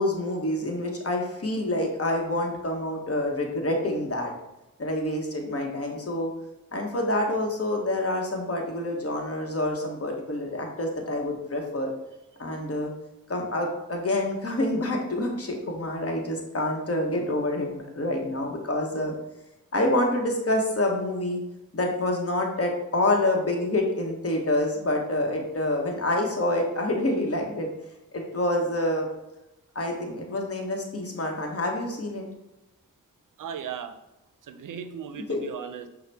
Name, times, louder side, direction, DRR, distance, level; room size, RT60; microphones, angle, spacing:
voice 1, 0.0-4.3 4.8-6.3 6.7-11.9 12.4-12.9 13.3-19.1 19.7-21.4 21.7-27.7 28.1-29.1 29.7-32.3 35.3-35.4, left 1 dB, 50° left, 1 dB, 1.0 m, -27 dB
voice 2, 33.4-33.9 34.4-35.9, right 7 dB, 80° right, 9 dB, 0.5 m, -37 dB
5.5 x 2.1 x 3.3 m, 0.95 s
cardioid pair, 45°, 32 cm